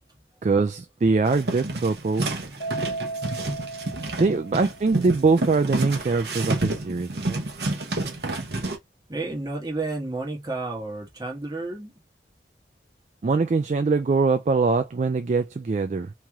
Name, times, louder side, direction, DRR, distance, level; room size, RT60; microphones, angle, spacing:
voice 1, 0.4-2.3 4.2-7.4 13.2-16.1, right 4 dB, 40° right, 0.3 m, -23 dB
sound 1, 1.3-8.8, right 2 dB, 65° right, 1.0 m, -29 dB
Keyboard (musical), 2.6-5.1, right 3 dB, 45° left, 1.3 m, -35 dB
voice 2, 3.7-4.2 9.1-11.9, right 2 dB, 20° right, 1.3 m, -32 dB
3.1 x 2.9 x 3.5 m
head